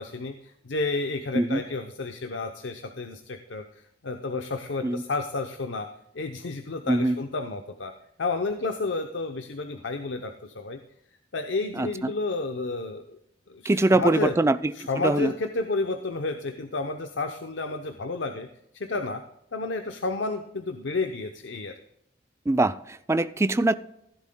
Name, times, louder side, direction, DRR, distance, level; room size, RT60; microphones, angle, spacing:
voice 1, 0.0-5.9 6.1-7.9 8.2-10.8 11.3-13.2 13.5-14.3 14.7-18.5 18.7-19.2 19.5-21.7, left 3 dB, 80° left, 6 dB, 0.7 m, -31 dB
voice 2, 13.6-14.6 15.0-15.3 22.5-23.8, right 2 dB, 15° right, 13 dB, 0.3 m, -22 dB
15.5 x 11.0 x 2.2 m, 0.79 s
head